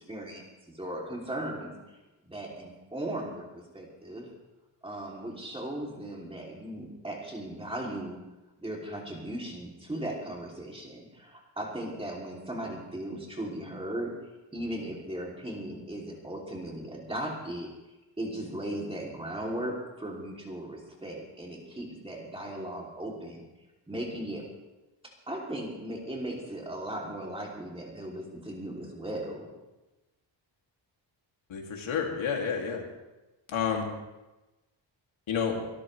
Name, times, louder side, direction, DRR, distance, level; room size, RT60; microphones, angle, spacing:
voice 1, 0.0-1.7 2.2-4.3 4.8-8.2 8.6-14.1 14.5-17.7 18.2-23.4 23.9-24.4 25.3-29.5, right 1 dB, 10° right, -2 dB, 2.9 m, -37 dB
voice 2, 31.5-32.8 33.5-33.8 35.3-35.6, left 6 dB, 85° left, 1 dB, 2.6 m, -30 dB
25.0 x 13.0 x 3.3 m, 1.1 s
wide cardioid pair, 160°, 47 cm